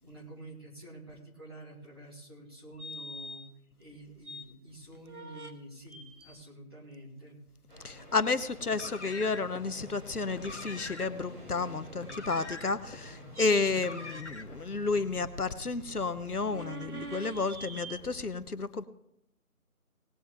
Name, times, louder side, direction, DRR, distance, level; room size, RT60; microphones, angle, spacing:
voice 1, 0.0-3.4 3.8-7.4, right 1 dB, 15° right, -6 dB, 2.2 m, -49 dB
sound 1, 2.8-3.5 3.9-4.4 4.9-5.5 5.9-6.5 13.3-13.7 16.4-18.0, right 2 dB, 75° right, 1.6 m, -44 dB
sound 2, 7.7-18.3, equal, 30° right, 3.6 m, -49 dB
voice 2, 7.8-18.8, left 4 dB, 75° left, 13 dB, 1.1 m, -31 dB
Car, 8.6-9.6 10.3-11.3 12.0-13.0 13.7-14.6, left 2 dB, 50° left, 1.2 m, -44 dB
19.0 x 8.8 x 3.6 m, 0.77 s
figure-of-eight pair, 170°, 45 cm